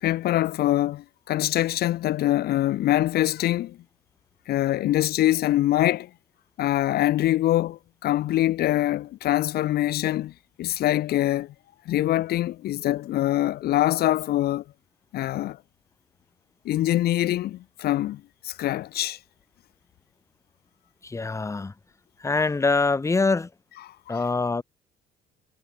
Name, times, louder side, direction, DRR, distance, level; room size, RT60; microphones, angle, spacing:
voice 1, 0.0-3.8 4.5-6.1 6.6-11.5 11.8-14.6 15.1-15.6 16.6-19.2 23.8-24.2, left 14 dB, 70° left, 1.3 m, -24 dB
voice 2, 21.0-21.7 22.2-23.5 24.1-24.6, left 3 dB, 15° left, 1.7 m, -24 dB
cardioid pair, 110°, 17 cm